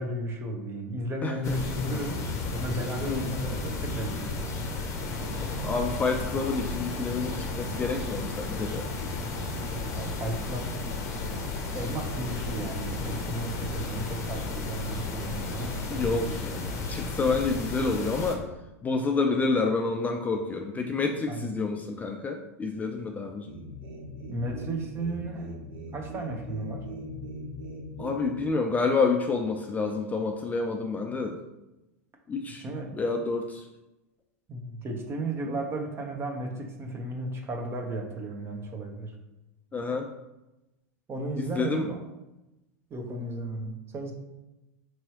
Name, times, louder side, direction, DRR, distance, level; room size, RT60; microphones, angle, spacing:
voice 1, 0.0-2.2 2.5-4.4 9.8-10.8 11.7-16.4 21.3-21.6 24.3-25.5 25.9-26.8 32.6-32.9 34.5-39.2 41.1-42.0 42.9-44.1, right 1 dB, 30° right, 2 dB, 0.8 m, -34 dB
voice 2, 1.2-1.6 3.0-3.2 5.6-8.9 15.9-18.4 18.8-23.5 28.0-31.4 32.3-32.6 32.9-33.7 35.5-35.6 39.7-40.1 41.6-41.9, left 4 dB, 20° left, 3 dB, 0.4 m, -28 dB
sound 1, 1.4-18.4, left 3 dB, 35° left, 0.7 m, -33 dB
Mechanisms, 5.0-16.0, left 3 dB, 80° left, 0.6 m, -43 dB
sound 2, 23.5-28.5, equal, 55° right, 1.0 m, -40 dB
4.6 x 2.9 x 2.9 m, 0.98 s
hypercardioid pair, 95°, 9 cm